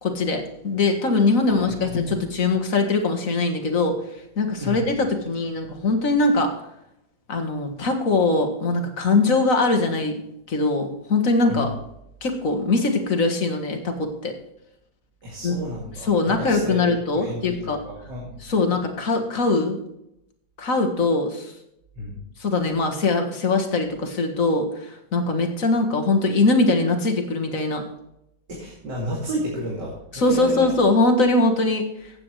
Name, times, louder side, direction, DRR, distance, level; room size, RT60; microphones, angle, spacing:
voice 1, 0.0-4.0 4.4-6.5 7.3-11.7 12.2-14.3 15.4-15.6 16.0-17.8 18.4-19.8 20.6-21.5 22.4-27.8 30.1-32.1, left 3 dB, 50° left, 4 dB, 2.0 m, -22 dB
voice 2, 1.5-2.2 4.6-4.9 11.5-11.7 15.2-18.4 22.0-22.1 28.5-30.7, equal, 80° right, -4 dB, 3.2 m, -32 dB
15.5 x 8.8 x 3.3 m, 0.80 s
omnidirectional pair, 1.9 m